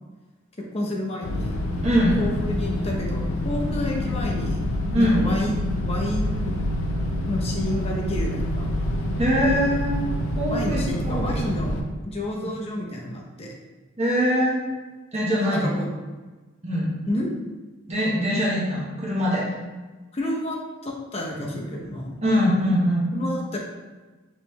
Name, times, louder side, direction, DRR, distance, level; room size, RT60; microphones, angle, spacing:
voice 1, 0.6-1.6 1.9-5.5 5.8-6.6 7.3-8.7 10.5-13.5 15.3-15.9 17.1-17.3 20.1-22.2 23.1-23.6, left 1 dB, 30° left, -1 dB, 0.7 m, -30 dB
sound 1, 1.2-11.8, left 1 dB, 75° left, 0.6 m, -27 dB
voice 2, 1.8-2.2 4.9-5.2 9.2-10.0 10.4-11.5 14.0-14.7 15.1-15.7 16.6-16.9 17.9-19.4 22.2-23.1, equal, 30° right, -6 dB, 1.0 m, -22 dB
5.2 x 3.1 x 3.0 m, 1.3 s
head